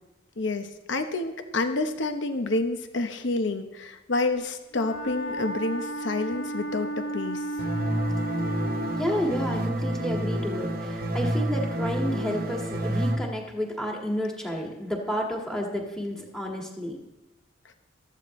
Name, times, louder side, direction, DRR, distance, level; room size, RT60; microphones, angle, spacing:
voice 1, 0.4-7.5 17.7-17.8, left 2 dB, 60° left, 7 dB, 0.9 m, -29 dB
Wind instrument woodwind instrument, 4.7-9.1, right 1 dB, 45° left, 1.2 m, -33 dB
sound 1, 7.6-13.2, right 1 dB, 45° right, 1.0 m, -29 dB
voice 2, 9.0-17.0, equal, 5° left, -1 dB, 1.8 m, -31 dB
14.5 x 13.0 x 3.2 m, 0.99 s
head